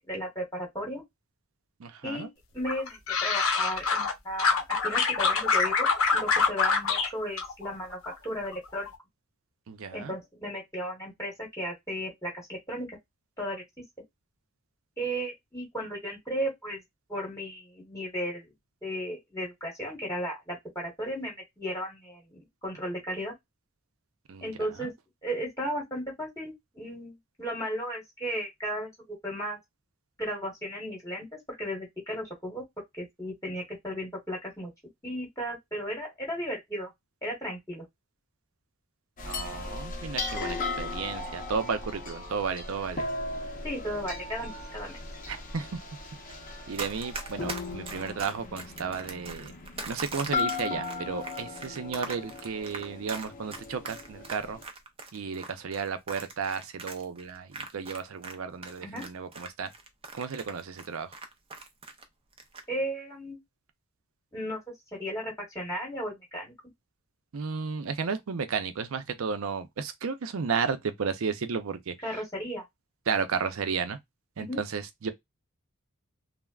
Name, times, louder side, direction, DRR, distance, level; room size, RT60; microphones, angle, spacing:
voice 1, 0.1-1.0 2.0-8.9 9.9-13.0 13.4-13.6 15.0-16.8 17.1-18.5 18.8-23.3 24.4-24.9 25.2-29.6 30.2-32.6 32.9-34.7 35.0-36.9 37.2-37.8 43.6-45.0 58.8-59.1 62.7-63.4 64.3-64.6 64.9-66.5 72.0-72.6 74.4-74.6, equal, 15° left, 1.1 m, -35 dB
voice 2, 1.8-2.3 9.7-10.1 24.3-24.9 39.3-43.1 45.3-45.8 46.7-49.5 49.9-54.6 55.1-59.7 60.1-61.1 67.3-71.9 73.1-74.0 74.4-75.1, right 5 dB, 80° right, 0.5 m, -33 dB
sound 1, 2.7-4.1 4.4-7.1 7.4-8.1 8.5-8.9, left 5 dB, 80° left, 0.7 m, -25 dB
sound 2, 39.2-54.6, left 3 dB, 40° left, 0.6 m, -37 dB
Run, 46.7-58.4 58.6-62.0 62.3-62.6, right 4 dB, 25° right, 0.5 m, -40 dB
3.3 x 2.0 x 2.3 m
head